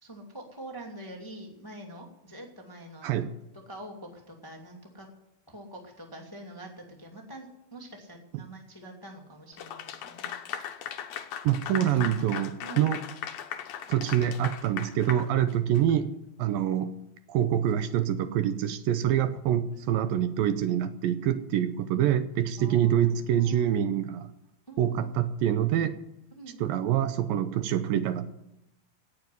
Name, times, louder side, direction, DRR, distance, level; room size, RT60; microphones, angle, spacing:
voice 1, 0.0-3.3 3.6-5.1 5.5-10.5 12.6-12.9 15.4-15.5 19.9-20.1 22.6-23.8 24.7-25.1 26.3-26.6, right 1 dB, 10° left, 1 dB, 1.4 m, -45 dB
voice 2, 3.0-3.3 11.4-13.0 13.9-16.1 16.4-16.9 17.3-24.3 24.8-26.0 26.6-28.4, right 10 dB, 75° right, 10 dB, 2.4 m, -26 dB
Clapping / Applause, 9.6-15.9, left 9 dB, 70° left, 1.6 m, -38 dB
17.5 x 7.0 x 9.6 m, 0.85 s
omnidirectional pair, 4.3 m